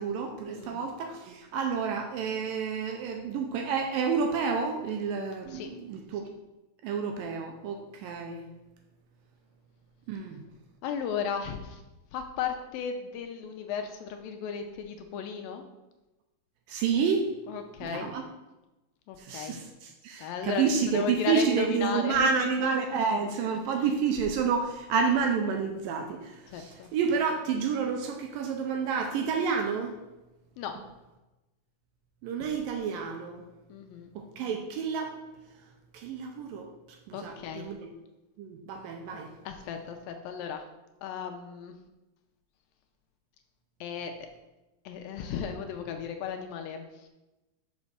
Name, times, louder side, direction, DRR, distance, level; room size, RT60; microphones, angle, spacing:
voice 1, 0.0-6.3 6.8-8.4 10.1-10.4 16.7-17.3 17.8-18.2 19.2-29.9 32.2-33.4 34.2-35.2 35.9-36.7 37.1-37.9 38.4-39.3, right 6 dB, 80° right, 3 dB, 2.1 m, -29 dB
voice 2, 0.6-0.9 5.5-5.7 10.8-11.8 12.1-15.6 17.5-18.1 19.1-19.6 20.2-22.3 23.7-23.8 26.5-26.9 30.6-30.7 33.7-34.1 37.1-37.7 39.5-40.6 41.0-41.7 43.8-44.1 44.9-47.1, left 7 dB, 80° left, 5 dB, 2.2 m, -35 dB
6.0 x 5.3 x 6.3 m, 1.0 s
omnidirectional pair, 4.4 m